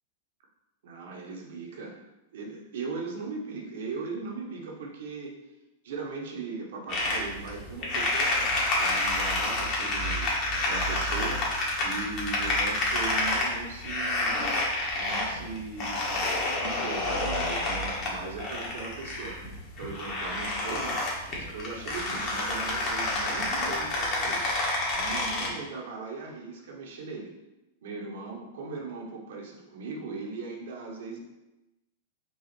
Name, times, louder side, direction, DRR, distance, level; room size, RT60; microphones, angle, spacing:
voice 1, 0.8-2.0 2.3-5.3 5.8-14.5 14.9-16.2 16.6-19.4 19.8-21.0 21.3-24.4 24.9-27.3 27.8-31.2, right 4 dB, 75° right, 0 dB, 1.0 m, -38 dB
sound 1, 6.9-25.5, left 2 dB, 40° left, 1.4 m, -29 dB
4.7 x 2.4 x 4.3 m, 0.97 s
hypercardioid pair, 120°, 0 cm